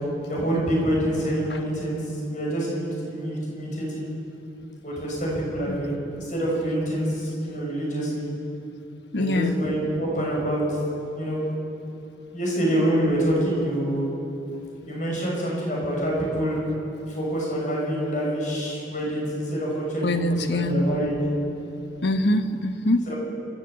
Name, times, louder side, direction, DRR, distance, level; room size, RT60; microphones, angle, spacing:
voice 1, 0.3-4.0 4.8-8.3 9.1-10.8 11.1-11.5 12.3-14.1 14.9-16.6 17.2-21.2 23.1-23.2, right 1 dB, 45° left, -3 dB, 7.1 m, -26 dB
voice 2, 9.1-9.6 20.0-20.9 22.0-23.1, left 1 dB, 70° left, 8 dB, 1.1 m, -23 dB
27.0 x 13.5 x 8.0 m, 2.8 s
head